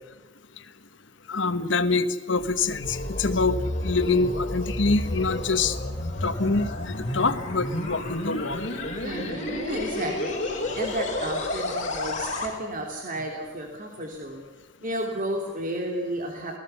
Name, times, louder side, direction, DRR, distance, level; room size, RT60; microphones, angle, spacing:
voice 1, 1.3-3.6 3.8-5.8 6.2-8.7, left 3 dB, 70° left, 10 dB, 1.4 m, -25 dB
sound 1, 2.4-12.5, left 1 dB, 40° left, 4.7 m, -31 dB
voice 2, 9.0-14.4 14.8-16.6, right 1 dB, 45° right, 1 dB, 3.0 m, -32 dB
28.5 x 19.5 x 7.0 m, 1.1 s
head